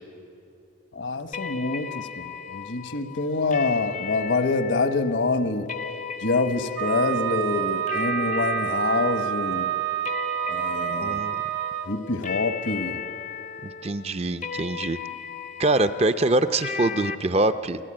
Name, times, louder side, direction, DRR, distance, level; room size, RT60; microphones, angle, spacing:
voice 1, 1.0-2.2 2.5-5.7 6.2-9.7 10.5-11.2 11.9-13.0, left 3 dB, 70° left, 9 dB, 1.2 m, -26 dB
sound 1, 1.3-17.2, left 7 dB, 40° left, 0.6 m, -36 dB
Wind instrument woodwind instrument, 6.7-11.9, right 12 dB, 90° right, 1.2 m, -28 dB
voice 2, 11.0-11.4 13.8-15.0 15.6-17.8, right 2 dB, 30° right, 11 dB, 0.5 m, -24 dB
29.0 x 14.0 x 8.8 m, 2.7 s
head